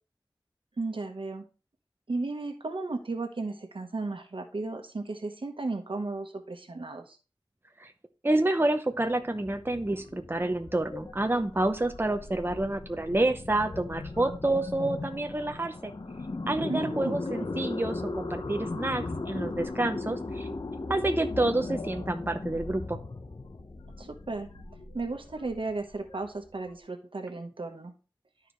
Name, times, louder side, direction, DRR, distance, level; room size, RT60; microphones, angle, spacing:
voice 1, 0.8-1.4 2.1-7.2 16.7-17.4 24.0-24.5 24.9-27.9, right 3 dB, 80° right, 5 dB, 1.2 m, -34 dB
voice 2, 8.2-15.9 16.5-20.5 20.9-23.0, right 2 dB, 25° right, 7 dB, 0.8 m, -28 dB
sound 1, 8.9-26.7, left 3 dB, 65° left, 1.0 m, -38 dB
12.5 x 4.8 x 3.2 m, 0.34 s
wide cardioid pair, 55°, 9 cm